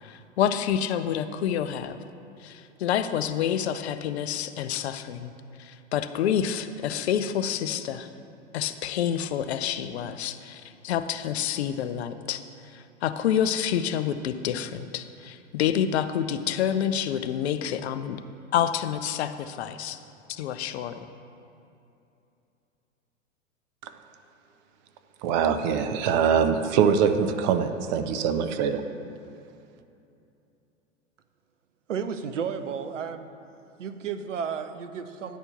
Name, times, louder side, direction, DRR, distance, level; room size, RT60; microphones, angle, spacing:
voice 1, 0.0-2.0 2.4-5.3 5.6-8.1 8.5-18.2 18.5-20.0 20.3-21.1, left 9 dB, 55° left, 11 dB, 0.6 m, -28 dB
voice 2, 25.2-28.8, right 7 dB, 35° right, 8 dB, 0.5 m, -23 dB
voice 3, 31.9-33.3 33.8-35.4, right 7 dB, 70° right, 9 dB, 0.7 m, -32 dB
10.0 x 4.4 x 6.5 m, 2.7 s
figure-of-eight pair, 95°, 38 cm